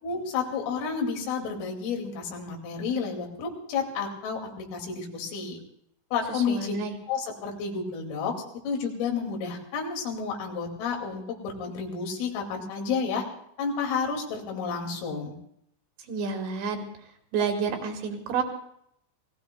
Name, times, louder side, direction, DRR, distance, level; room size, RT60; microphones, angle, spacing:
voice 1, 0.0-5.6 6.1-6.7 7.1-8.3 8.6-13.3 13.6-15.3, left 5 dB, 85° left, 1 dB, 5.0 m, -31 dB
voice 2, 6.3-7.0 16.1-16.9 17.3-18.4, right 5 dB, 70° right, 3 dB, 3.5 m, -29 dB
28.5 x 18.5 x 2.3 m, 0.72 s
omnidirectional pair, 5.7 m